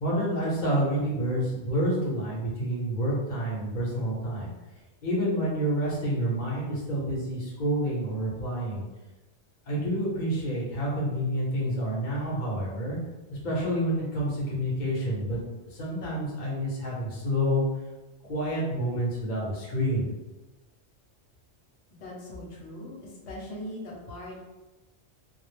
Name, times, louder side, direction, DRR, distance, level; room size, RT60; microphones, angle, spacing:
voice 1, 0.0-4.5 5.0-8.9 9.7-13.0 13.3-15.4 15.6-17.6 18.3-20.1, equal, 50° left, -5 dB, 0.9 m, -28 dB
voice 2, 21.9-24.4, left 1 dB, 80° left, -4 dB, 1.0 m, -40 dB
2.3 x 2.0 x 3.2 m, 1.1 s
omnidirectional pair, 1.1 m